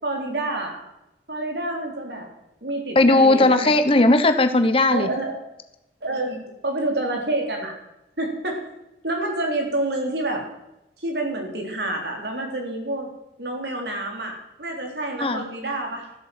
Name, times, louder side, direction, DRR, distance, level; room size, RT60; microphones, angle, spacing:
voice 1, 0.0-0.8 1.3-2.3 2.6-3.7 4.9-5.3 6.0-7.7 8.2-8.6 9.0-10.4 11.0-13.1 13.4-16.1, right 2 dB, 70° right, 2 dB, 3.6 m, -28 dB
voice 2, 2.9-5.1 15.2-15.4, left 2 dB, 30° left, 8 dB, 1.0 m, -17 dB
14.0 x 8.1 x 7.8 m, 0.90 s
head